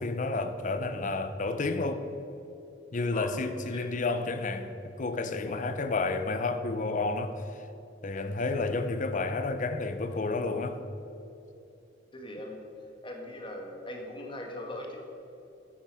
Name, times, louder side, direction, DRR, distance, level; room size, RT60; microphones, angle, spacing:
voice 1, 0.0-2.0 2.9-7.4 8.0-10.8, left 3 dB, 45° left, 0.6 m, -31 dB
voice 2, 12.1-12.7 13.0-15.0, left 1 dB, 30° left, 1.3 m, -40 dB
8.3 x 7.3 x 6.0 m
head